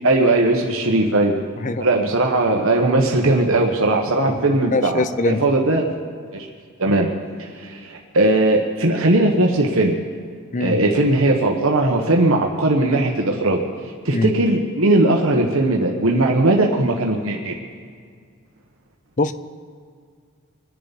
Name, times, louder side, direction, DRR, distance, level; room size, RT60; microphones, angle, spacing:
voice 1, 0.0-1.4 1.8-5.9 6.3-6.5 6.8-7.1 7.4-10.0 10.6-13.6 14.0-17.6, right 2 dB, 70° right, 1 dB, 1.3 m, -18 dB
voice 2, 4.7-5.4 10.5-10.8 14.1-14.3 19.2-19.3, left 2 dB, 35° left, 12 dB, 0.6 m, -22 dB
24.5 x 10.5 x 4.2 m, 2.1 s
head